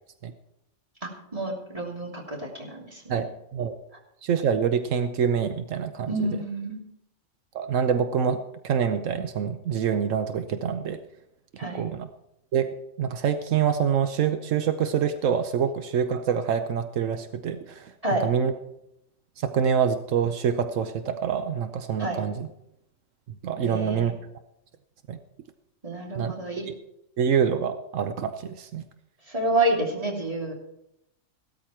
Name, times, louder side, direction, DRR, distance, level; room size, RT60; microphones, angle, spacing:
voice 1, 1.0-3.2 6.1-6.8 11.6-11.8 18.0-18.2 22.0-22.2 23.6-24.1 25.8-26.7 29.3-30.5, right 1 dB, 25° right, -2 dB, 3.2 m, -29 dB
voice 2, 3.1-3.7 4.2-6.1 7.5-8.4 8.6-11.0 11.7-12.1 12.5-12.7 13.0-17.9 18.2-18.5 19.4-22.5 23.4-24.1 25.1-25.2 26.1-26.3 26.7-26.8 27.2-28.8, right 7 dB, 85° right, 9 dB, 1.2 m, -26 dB
16.0 x 13.0 x 4.5 m, 0.80 s
omnidirectional pair, 1.3 m